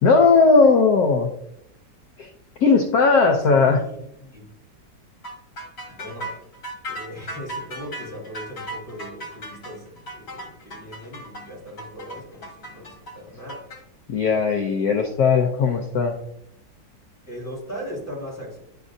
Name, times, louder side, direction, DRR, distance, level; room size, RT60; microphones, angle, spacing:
voice 1, 0.0-1.3 2.2-2.3 2.6-3.8 14.1-16.2, left 4 dB, 70° left, 3 dB, 1.0 m, -17 dB
voice 2, 3.5-4.5 5.9-6.4 6.9-13.6 17.3-18.6, equal, 10° right, -4 dB, 2.0 m, -38 dB
sound 1, 5.2-13.8, right 1 dB, 40° left, 1.3 m, -36 dB
9.8 x 5.0 x 2.6 m, 0.80 s
omnidirectional pair, 2.0 m